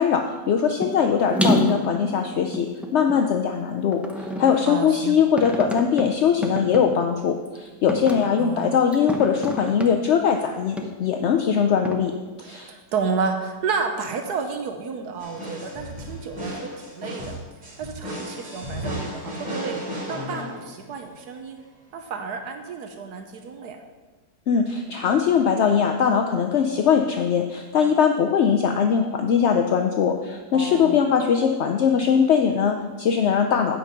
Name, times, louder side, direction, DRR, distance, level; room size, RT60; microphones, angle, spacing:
voice 1, 0.0-12.1 12.4-12.7 24.5-33.8, left 7 dB, 65° left, 4 dB, 0.6 m, -21 dB
sound 1, 0.8-1.0 1.3-3.2 3.9-4.7 5.4-6.0 6.4-6.8 7.5-7.6 7.9-8.3 8.9-9.9 10.8-10.9 11.9-12.0, equal, ahead, 0.3 m, -26 dB
voice 2, 4.7-5.2 8.4-8.8 12.4-16.6 16.9-17.3 17.8-19.7 20.1-21.6 21.9-23.8 30.5-31.0, right 5 dB, 75° right, 5 dB, 1.3 m, -31 dB
sound 2, 15.2-21.0, equal, 55° right, 3.0 m, -34 dB
9.0 x 5.4 x 6.6 m, 1.3 s
omnidirectional pair, 1.8 m